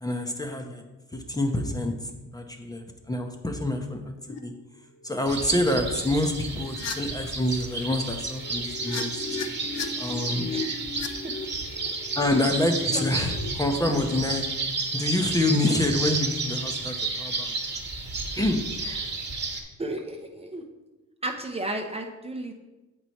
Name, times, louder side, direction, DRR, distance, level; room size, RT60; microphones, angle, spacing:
voice 1, 0.0-0.8 1.1-1.9 2.3-4.0 4.3-4.5 5.0-9.2 10.0-10.5 12.1-14.5 14.9-17.5 18.3-18.6, left 1 dB, 10° left, 4 dB, 0.8 m, -27 dB
sound 1, 4.3-4.4 5.0-5.3 6.7-7.0 8.3-13.5, left 5 dB, 60° left, 0.8 m, -36 dB
sound 2, 5.3-19.6, right 3 dB, 35° right, 1.3 m, -32 dB
voice 2, 18.7-19.1 19.8-20.6 21.2-22.5, right 2 dB, 20° right, 3 dB, 0.7 m, -34 dB
7.6 x 4.6 x 4.2 m, 1.1 s
cardioid pair, 90°, 30 cm